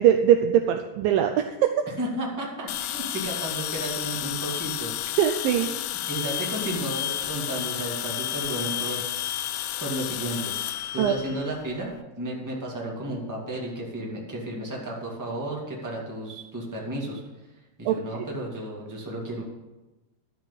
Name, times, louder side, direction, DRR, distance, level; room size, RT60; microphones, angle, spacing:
voice 1, 0.0-1.8 5.2-5.7 11.0-11.1 17.9-18.0, right 10 dB, 85° right, 6 dB, 2.0 m, -21 dB
voice 2, 2.0-5.1 5.6-5.7 6.1-9.0 9.8-11.9 12.2-17.2 17.8-19.4, right 1 dB, 10° right, -3 dB, 0.8 m, -33 dB
sound 1, 2.7-11.9, left 12 dB, 85° left, 2.0 m, -31 dB
12.0 x 6.1 x 7.3 m, 1.1 s
omnidirectional pair, 4.6 m